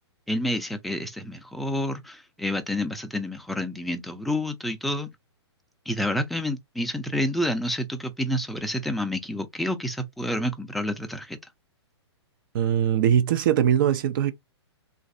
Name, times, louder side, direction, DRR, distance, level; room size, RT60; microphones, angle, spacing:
voice 1, 0.3-5.1 5.9-11.4, left 1 dB, ahead, 0.5 m, -29 dB
voice 2, 12.5-14.3, right 9 dB, 50° right, 0.6 m, -21 dB
3.1 x 2.5 x 2.6 m
hypercardioid pair, 130°, 14 cm